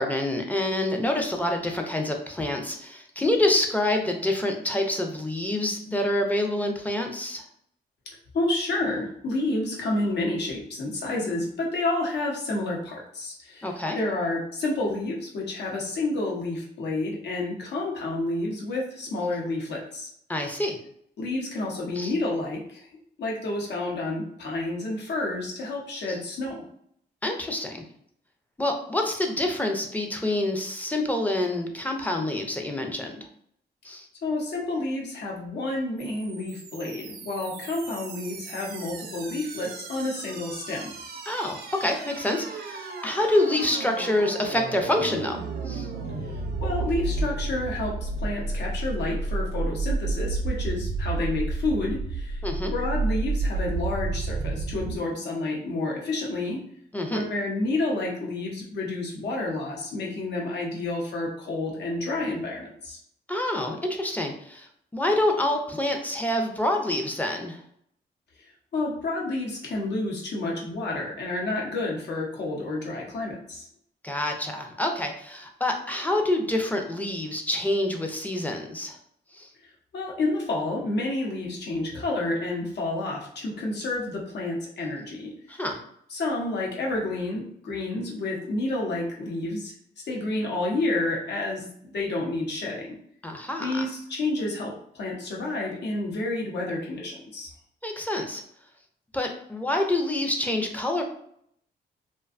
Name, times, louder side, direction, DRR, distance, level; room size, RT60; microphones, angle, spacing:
voice 1, 0.0-7.5 13.6-14.0 20.3-20.8 22.0-22.1 26.1-26.2 27.2-27.8 28.6-33.3 33.8-34.1 41.3-45.9 52.4-52.7 56.9-57.2 63.3-64.7 64.9-67.6 74.0-79.0 79.3-79.5 85.5-85.8 93.2-93.9 97.8-98.4 99.1-101.0, left 1 dB, 10° left, 3 dB, 0.4 m, -27 dB
voice 2, 8.1-20.1 21.2-22.9 23.2-26.6 34.2-40.9 46.6-52.4 52.7-56.6 57.1-63.0 68.7-73.7 79.6-85.6 86.1-89.7 90.0-92.9 93.6-97.5, left 2 dB, 70° left, -2 dB, 0.8 m, -30 dB
sound 1, 36.0-55.0, right 3 dB, 60° right, 0.4 m, -32 dB
2.5 x 2.2 x 2.4 m, 0.68 s
cardioid pair, 85°, 18 cm